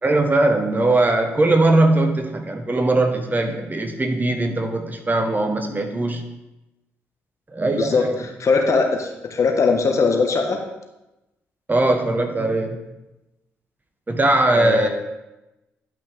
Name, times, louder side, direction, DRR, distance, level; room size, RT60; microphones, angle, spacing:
voice 1, 0.0-6.2 7.5-8.1 11.7-12.8 14.1-14.9, right 2 dB, 25° right, 5 dB, 1.3 m, -20 dB
voice 2, 8.4-10.6 14.5-14.9, left 4 dB, 50° left, 3 dB, 1.4 m, -20 dB
11.0 x 5.7 x 3.5 m, 0.97 s
hypercardioid pair, 45°, 7 cm